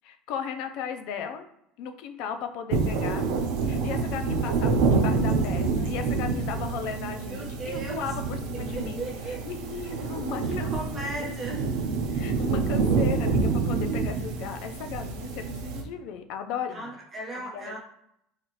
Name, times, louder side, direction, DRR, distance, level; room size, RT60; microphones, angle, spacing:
voice 1, 0.0-1.5 1.8-3.3 3.6-10.7 11.0-11.4 12.1-16.9 17.3-17.8, left 7 dB, 60° left, 7 dB, 0.4 m, -36 dB
sound 1, 2.7-15.8, right 4 dB, 80° right, 0.7 m, -27 dB
voice 2, 7.3-8.0 8.7-9.4 9.8-9.9 10.5-11.6 16.7-17.8, right 2 dB, 20° right, -3 dB, 1.1 m, -36 dB
4.1 x 2.4 x 3.0 m, 0.76 s
cardioid pair, 165°, 0 cm